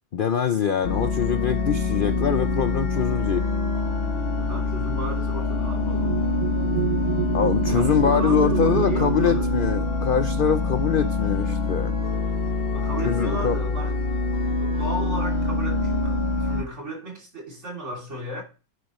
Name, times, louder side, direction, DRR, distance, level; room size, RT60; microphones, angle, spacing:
voice 1, 0.1-3.5 7.3-11.9 13.0-13.6, left 7 dB, 75° left, 0.4 m, -24 dB
sound 1, 0.8-16.6, left 3 dB, 40° left, 1.1 m, -25 dB
sound 2, 3.3-12.2 13.1-13.3 13.6-14.2, right 12 dB, 70° right, 0.8 m, -33 dB
voice 2, 4.4-6.2 7.7-9.5 12.7-14.2 14.5-18.4, right 1 dB, 45° right, 3.4 m, -34 dB
9.6 x 8.7 x 3.1 m
omnidirectional pair, 1.7 m